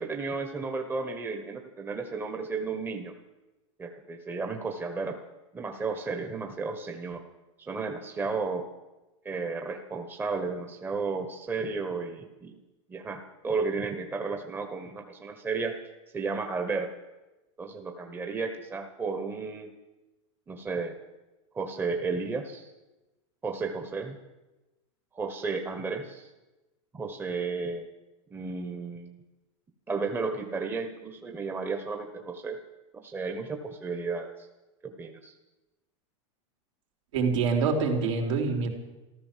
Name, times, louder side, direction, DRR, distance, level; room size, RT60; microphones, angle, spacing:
voice 1, 0.0-3.1 3.8-5.2 5.5-7.2 7.6-8.7 9.2-12.6 12.9-15.8 16.1-16.9 17.6-19.7 20.5-21.0 21.5-22.7 23.4-24.2 25.1-26.3 26.9-27.8 28.3-29.2 29.9-32.6 33.0-34.5 34.8-35.3, right 4 dB, 15° right, 5 dB, 1.3 m, -33 dB
voice 2, 37.1-38.7, right 4 dB, 70° right, 2 dB, 3.6 m, -25 dB
14.0 x 13.0 x 7.6 m, 1.1 s
supercardioid pair, 135°, 16 cm